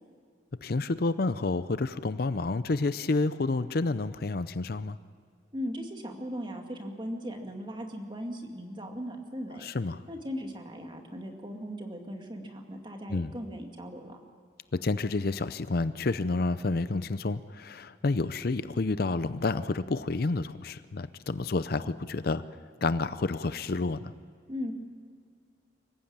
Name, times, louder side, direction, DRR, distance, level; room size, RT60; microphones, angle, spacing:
voice 1, 0.6-5.0 9.6-10.0 13.1-13.3 14.7-22.4 22.8-24.1, left 3 dB, 50° left, 14 dB, 0.6 m, -29 dB
voice 2, 5.5-9.7 10.1-14.2 24.5-24.7, equal, 25° right, 3 dB, 2.2 m, -38 dB
25.0 x 15.0 x 8.8 m, 2.2 s
head